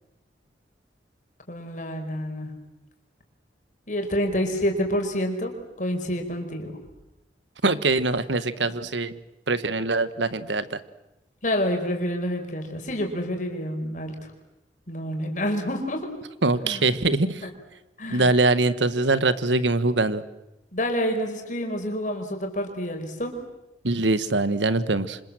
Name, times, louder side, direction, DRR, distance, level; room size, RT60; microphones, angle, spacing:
voice 1, 1.5-2.5 3.9-6.7 11.4-14.1 14.9-16.1 16.6-16.8 17.4-17.5 18.0-18.3 20.7-23.3, equal, 45° left, 4 dB, 5.0 m, -28 dB
voice 2, 7.6-9.2 9.5-10.8 16.4-17.5 18.1-20.2 23.8-25.2, right 2 dB, 85° right, 14 dB, 1.4 m, -23 dB
27.5 x 26.0 x 7.7 m, 0.93 s
head